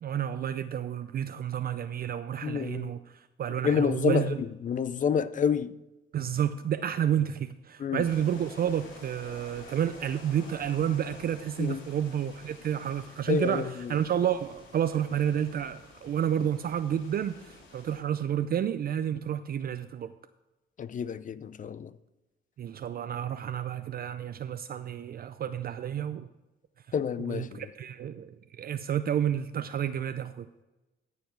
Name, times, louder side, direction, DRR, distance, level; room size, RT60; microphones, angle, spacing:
voice 1, 0.0-4.4 6.1-20.1 22.6-26.3 27.2-30.5, right 9 dB, 50° right, 0.5 m, -30 dB
voice 2, 2.4-2.9 3.6-4.3 4.6-5.7 7.8-8.0 11.6-11.8 13.3-13.9 20.8-21.9 26.9-27.7, left 7 dB, 40° left, 0.5 m, -28 dB
sound 1, 8.0-18.0, left 2 dB, 75° left, 3.1 m, -50 dB
14.5 x 5.0 x 4.6 m
cardioid pair, 90°, 20 cm